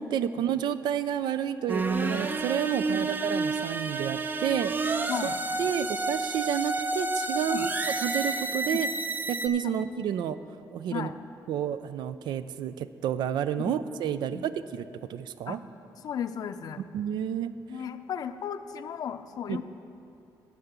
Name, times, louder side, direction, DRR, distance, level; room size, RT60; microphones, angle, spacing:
voice 1, 0.0-4.9 5.2-5.3 5.6-7.7 8.0-8.9 9.3-10.4 10.7-11.1 11.5-15.6 16.9-17.5 19.5-19.6, right 9 dB, 80° right, 13 dB, 0.4 m, -30 dB
sound 1, 1.7-9.5, right 3 dB, 25° right, 0.5 m, -30 dB
voice 2, 16.0-16.8 17.7-19.6, left 8 dB, 60° left, 10 dB, 0.5 m, -35 dB
9.5 x 5.7 x 8.0 m, 2.7 s
cardioid pair, 110°, 8 cm